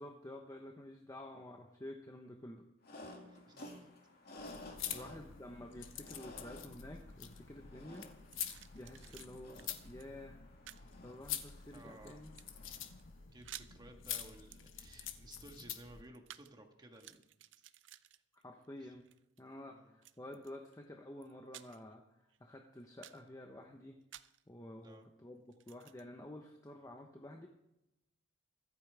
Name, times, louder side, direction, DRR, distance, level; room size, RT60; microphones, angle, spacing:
voice 1, 0.0-2.6 4.9-8.1 8.4-10.4 11.0-12.3 18.4-19.1 19.4-24.0 24.5-27.5, left 1 dB, 20° left, 2 dB, 1.0 m, -50 dB
sound 1, 2.8-13.1, left 1 dB, 55° left, 2.4 m, -55 dB
voice 2, 3.0-3.9 4.3-4.6 4.9-5.1 9.0-9.2 11.7-12.2 13.3-17.3 19.7-20.0 24.8-25.1, right 1 dB, 20° right, 3 dB, 1.6 m, -57 dB
sound 2, 4.4-16.0, left 9 dB, 85° left, 1.2 m, -47 dB
sound 3, 7.9-9.3 9.6-10.1 10.7-10.9 11.5-12.1 12.3-12.7 13.0-13.1 13.3-13.7 14.1-14.3 14.5-16.5 16.8-18.7 19.0-19.4 20.0-20.8 21.2-21.9 22.3-22.4 22.8-23.3 24.1-24.4 25.5-26.0, right 13 dB, 65° right, 0.5 m, -54 dB
24.0 x 8.6 x 3.5 m, 0.89 s
head